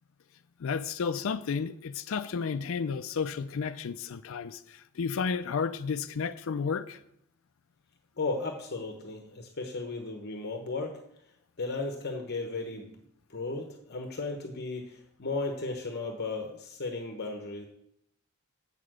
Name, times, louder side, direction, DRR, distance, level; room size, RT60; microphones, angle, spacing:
voice 1, 0.6-7.0, left 5 dB, 65° left, 0.4 m, -32 dB
voice 2, 8.2-11.0 11.6-12.9 13.3-17.7, left 3 dB, 50° left, 1.0 m, -35 dB
8.3 x 6.8 x 6.2 m
head